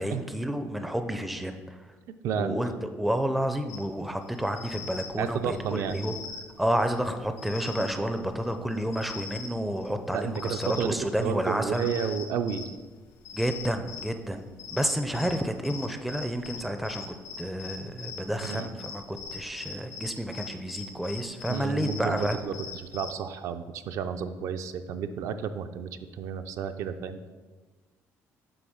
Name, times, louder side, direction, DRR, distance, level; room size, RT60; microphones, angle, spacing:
voice 1, 0.0-1.9 2.3-6.2 6.6-11.9 13.3-14.5 14.7-22.4, equal, ahead, 7 dB, 0.4 m, -30 dB
voice 2, 2.2-2.6 5.2-6.0 10.1-12.6 18.4-18.7 21.5-22.5 22.9-25.9 26.2-27.3, right 7 dB, 65° right, 8 dB, 0.4 m, -31 dB
sound 1, 3.7-23.2, left 5 dB, 90° left, 1.9 m, -43 dB
7.9 x 3.3 x 6.3 m, 1.3 s
cardioid pair, 150°, 6 cm